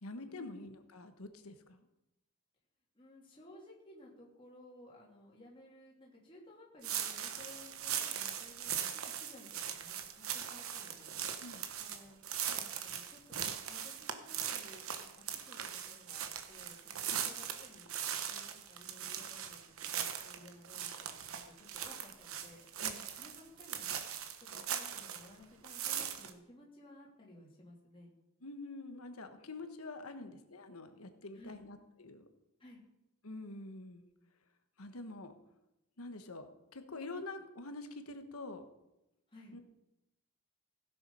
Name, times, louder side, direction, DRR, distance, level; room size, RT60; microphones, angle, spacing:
voice 1, 0.0-1.8 11.4-11.7 17.1-17.2 22.8-23.1 28.4-32.2 33.2-34.1 34.8-35.3 36.0-38.6 39.5-39.6, left 2 dB, 85° left, 8 dB, 1.2 m, -46 dB
voice 2, 2.9-11.2 11.8-12.2 12.5-13.4 13.7-17.9 18.3-21.2 21.6-22.7 23.1-24.0 24.5-28.1 30.1-30.3 31.3-31.7 32.6-32.8 39.3-39.6, left 1 dB, 25° left, -4 dB, 2.8 m, -57 dB
sound 1, 6.8-25.3 25.6-26.3, right 9 dB, 70° right, 1.1 m, -40 dB
16.0 x 7.1 x 5.5 m, 0.92 s
head